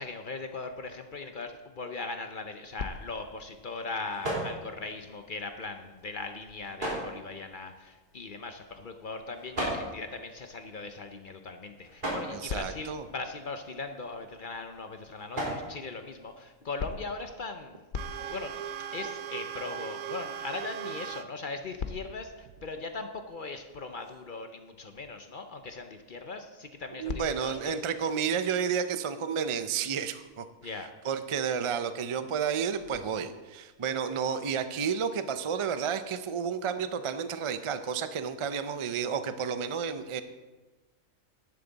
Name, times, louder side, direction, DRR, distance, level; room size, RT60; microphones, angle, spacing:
voice 1, 0.0-17.8 18.3-18.5 18.9-27.8 30.6-30.9, left 3 dB, 50° left, 7 dB, 0.7 m, -39 dB
sound 1, 2.6-16.9, right 1 dB, 40° right, 3.3 m, -40 dB
voice 2, 12.3-13.1 27.0-30.4 31.0-40.2, right 7 dB, 55° right, 10 dB, 0.3 m, -31 dB
sound 2, 17.9-21.2 21.6-21.7 22.5-22.7 24.9-25.0 25.6-25.7, right 8 dB, 85° right, 1.0 m, -38 dB
10.5 x 10.5 x 4.0 m, 1.2 s
omnidirectional pair, 1.4 m